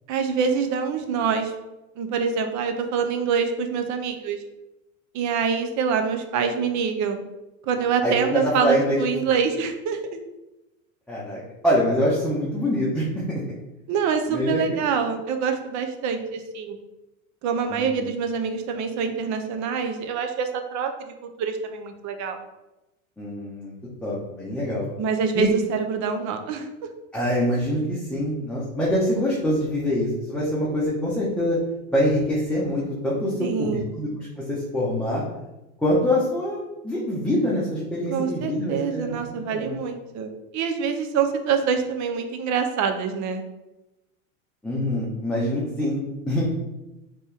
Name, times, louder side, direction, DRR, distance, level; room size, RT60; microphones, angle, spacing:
voice 1, 0.1-1.5 2.0-4.4 5.1-7.2 7.7-10.2 13.9-16.8 17.4-22.4 25.0-26.7 33.4-33.9 38.1-43.4, right 6 dB, 45° right, 6 dB, 0.7 m, -25 dB
voice 2, 8.0-9.0 11.1-13.4 14.3-14.8 17.7-18.1 23.2-23.7 24.0-24.9 25.3-25.5 27.1-31.6 31.9-33.7 33.9-35.2 35.8-39.7 44.6-46.0 46.3-46.4, left 1 dB, ahead, -8 dB, 1.2 m, -25 dB
4.2 x 3.0 x 3.4 m, 0.98 s
hypercardioid pair, 90°, 41 cm